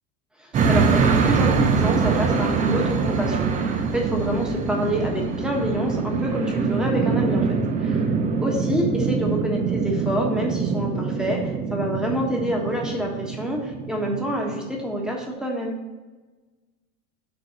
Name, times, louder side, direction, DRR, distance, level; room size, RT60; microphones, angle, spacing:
voice 1, 0.4-7.5 7.8-8.0 8.4-15.8, equal, ahead, 0 dB, 1.3 m, -27 dB
sound 1, 0.5-14.8, right 5 dB, 20° right, 0.5 m, -24 dB
6.6 x 4.0 x 6.2 m, 1.2 s
supercardioid pair, 140°, 39 cm